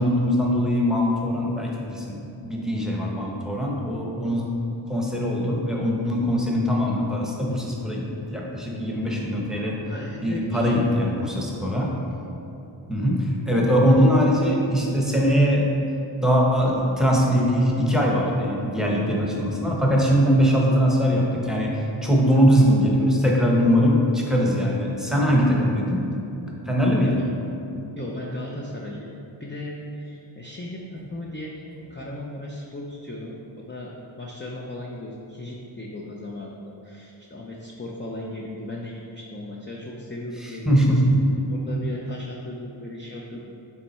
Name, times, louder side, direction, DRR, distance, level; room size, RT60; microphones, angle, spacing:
voice 1, 0.0-4.5 4.9-8.0 8.3-9.8 10.2-11.9 12.9-15.7 16.2-26.0 26.7-27.2 40.4-41.3, equal, ahead, -3 dB, 1.0 m, -21 dB
voice 2, 9.8-10.8 27.0-27.2 28.0-31.5 31.9-40.8 41.5-43.5, left 1 dB, 25° left, -3 dB, 0.5 m, -36 dB
7.1 x 3.5 x 4.3 m, 2.9 s
wide cardioid pair, 60°, 49 cm